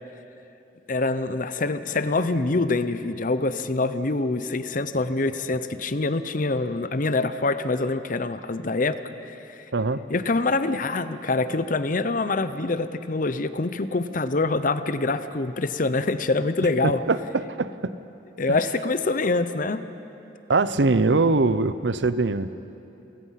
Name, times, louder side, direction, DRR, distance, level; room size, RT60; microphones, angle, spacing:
voice 1, 0.9-9.4 10.1-17.0 18.4-19.8, left 3 dB, 45° left, 12 dB, 0.8 m, -25 dB
voice 2, 16.8-17.9 18.5-18.6 20.5-22.5, right 3 dB, 75° right, 14 dB, 0.7 m, -22 dB
30.0 x 16.0 x 5.8 m, 2.9 s
head